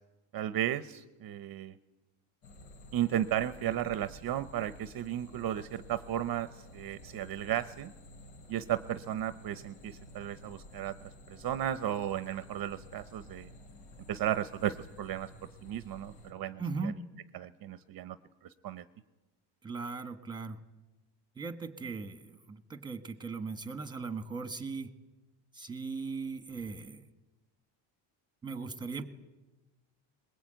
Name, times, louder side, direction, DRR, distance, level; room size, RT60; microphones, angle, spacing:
voice 1, 0.3-1.8 2.9-7.9 8.5-13.5 14.1-15.3 15.6-16.9 17.3-18.2 18.6-18.8, right 11 dB, 45° right, 13 dB, 0.8 m, -34 dB
sound 1, 2.4-16.3, left 1 dB, 75° left, 5.9 m, -52 dB
voice 2, 16.6-17.0 19.6-20.6 21.4-24.9 25.5-27.0 28.4-29.1, right 4 dB, 10° right, 10 dB, 1.4 m, -38 dB
21.5 x 21.5 x 9.0 m, 1.1 s
cardioid pair, 170°, 49 cm